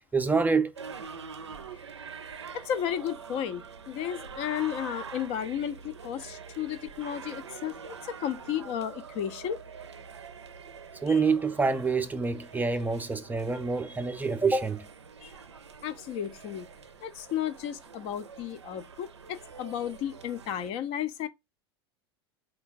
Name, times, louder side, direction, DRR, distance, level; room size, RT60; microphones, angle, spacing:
voice 1, 0.1-0.7 11.0-14.8, right 4 dB, 10° right, 0.4 m, -26 dB
sound 1, 0.8-20.7, right 6 dB, 90° right, 0.4 m, -45 dB
voice 2, 2.5-9.6 11.1-11.2 15.2-15.3 15.8-16.7 17.0-21.3, left 10 dB, 50° left, 0.5 m, -33 dB
3.9 x 2.3 x 3.9 m
hypercardioid pair, 85°, 14 cm